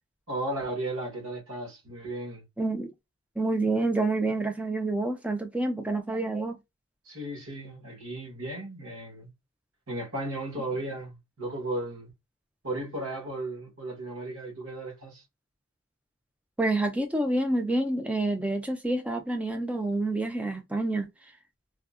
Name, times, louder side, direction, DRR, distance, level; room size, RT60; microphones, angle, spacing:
voice 1, 0.3-2.4 7.1-9.3 9.9-12.1 12.6-15.2, right 1 dB, 70° right, 1.2 m, -35 dB
voice 2, 2.6-2.9 3.4-6.6 16.6-21.1, right 2 dB, 5° right, 0.3 m, -28 dB
3.4 x 2.0 x 2.4 m
head